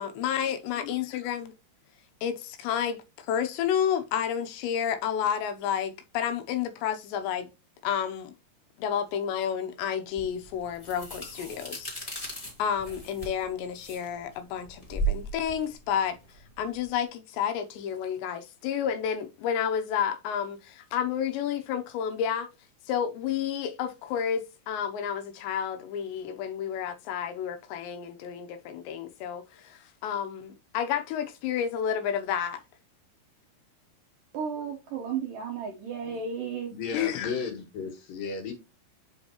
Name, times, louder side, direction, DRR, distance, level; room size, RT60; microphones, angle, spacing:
voice 1, 0.0-1.5 2.2-7.5 7.8-8.3 8.8-12.1 12.6-16.2 16.6-22.5 22.9-32.6 36.9-37.3, left 8 dB, 80° left, 3.0 m, -30 dB
sound 1, 10.2-16.9, right 3 dB, 20° left, 1.0 m, -36 dB
voice 2, 34.3-36.7, right 6 dB, 75° right, 2.1 m, -33 dB
voice 3, 36.7-38.5, left 5 dB, 65° left, 2.7 m, -34 dB
7.7 x 5.5 x 2.9 m
omnidirectional pair, 5.1 m